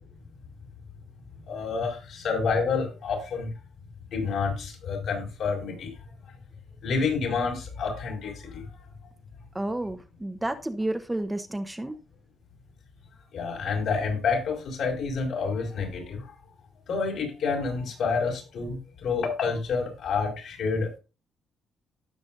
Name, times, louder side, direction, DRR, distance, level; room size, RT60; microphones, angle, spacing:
voice 1, 1.4-3.5 4.1-5.9 6.8-8.7 13.3-16.3 16.9-20.9, left 5 dB, 70° left, 0 dB, 5.7 m, -28 dB
voice 2, 9.5-12.0, right 1 dB, 10° right, 8 dB, 1.0 m, -31 dB
17.5 x 6.2 x 2.6 m, 0.31 s
cardioid pair, 90°, 0 cm